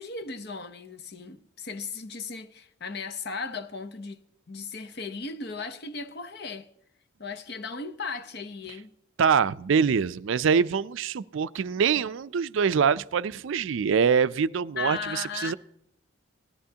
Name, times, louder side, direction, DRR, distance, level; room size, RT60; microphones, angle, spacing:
voice 1, 0.0-4.2 4.5-6.7 7.2-8.9 14.8-15.5, left 4 dB, 50° left, 0.8 m, -36 dB
voice 2, 9.2-15.5, right 6 dB, 65° right, 0.4 m, -24 dB
18.0 x 12.5 x 2.8 m
head